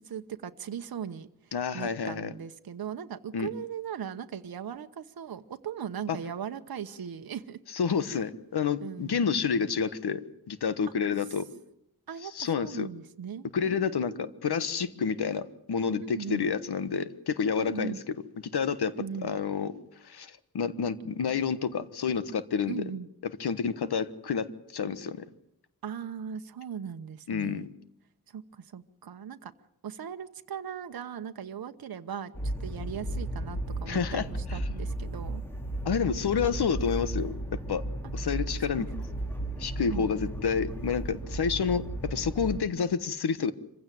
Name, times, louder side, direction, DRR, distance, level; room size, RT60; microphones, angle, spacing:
voice 1, 0.0-7.6 8.8-9.4 12.1-14.3 16.0-16.5 17.5-18.0 18.8-19.3 22.7-23.1 25.8-27.7 28.3-29.5 29.8-35.4 38.7-38.9 39.9-40.3, right 8 dB, 65° right, 8 dB, 1.1 m, -39 dB
voice 2, 1.5-2.3 3.3-3.5 6.1-6.2 7.7-10.2 10.5-11.5 12.3-12.9 13.5-17.9 18.5-18.9 19.2-19.7 20.0-22.8 23.2-25.2 27.3-27.7 33.9-34.2 35.8-37.3 37.7-37.8 38.1-38.9 39.6-43.5, left 6 dB, 80° left, 13 dB, 1.4 m, -29 dB
sound 1, 32.3-42.6, right 1 dB, 5° left, 2.5 m, -35 dB
26.0 x 16.0 x 9.2 m, 0.77 s
wide cardioid pair, 145°, 38 cm